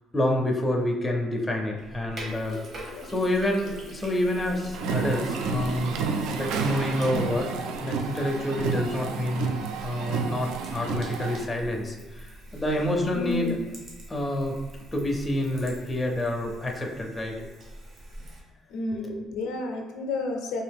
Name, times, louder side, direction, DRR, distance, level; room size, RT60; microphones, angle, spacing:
voice 1, 0.1-2.6 3.0-6.0 6.3-7.5 7.8-13.6 14.1-14.6 14.9-17.4 19.0-19.1, left 1 dB, 10° left, 0 dB, 0.5 m, -28 dB
Sink (filling or washing), 1.8-18.4, right 1 dB, 40° right, 0.9 m, -44 dB
sound 1, 4.7-11.4, right 5 dB, 80° right, 0.3 m, -30 dB
voice 2, 13.1-13.6 18.7-20.6, left 3 dB, 75° left, 3 dB, 0.5 m, -31 dB
3.8 x 2.5 x 3.4 m, 1.2 s
cardioid pair, 155°, 0 cm